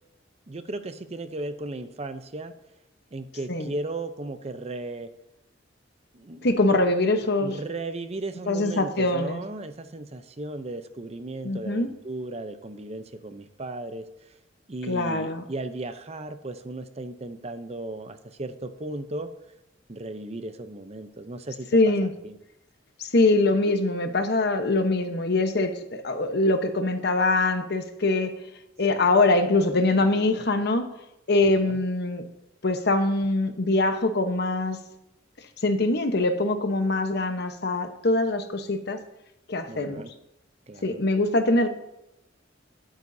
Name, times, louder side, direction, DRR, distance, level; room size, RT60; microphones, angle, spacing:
voice 1, 0.5-2.5 3.1-5.1 6.1-6.5 7.4-14.0 14.7-19.3 19.9-22.3 28.9-29.1 31.5-31.8 39.7-40.1 40.7-41.0, right 2 dB, 35° right, 9 dB, 0.7 m, -36 dB
voice 2, 6.4-7.6 8.5-9.4 11.4-11.9 14.9-15.4 21.7-22.1 23.0-28.3 28.8-30.9 31.3-32.2 32.6-34.8 35.6-39.0 39.5-40.0 40.8-41.7, left 2 dB, 60° left, 7 dB, 1.0 m, -23 dB
21.0 x 9.0 x 2.7 m, 0.87 s
head